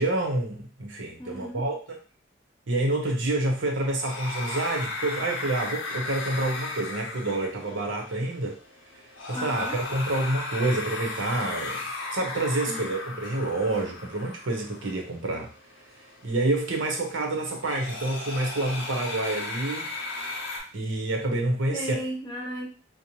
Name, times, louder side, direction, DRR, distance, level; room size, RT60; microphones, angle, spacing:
voice 1, 0.0-2.0 2.7-8.6 9.3-11.8 12.1-15.5 16.2-19.9 20.7-22.0, right 2 dB, 75° right, 1 dB, 0.7 m, -28 dB
voice 2, 1.2-1.6 9.3-9.8 12.7-12.9 21.7-22.7, equal, 20° left, -2 dB, 0.5 m, -35 dB
sound 1, 3.8-20.6, left 3 dB, 85° left, 0.7 m, -36 dB
2.7 x 2.0 x 2.9 m, 0.38 s
head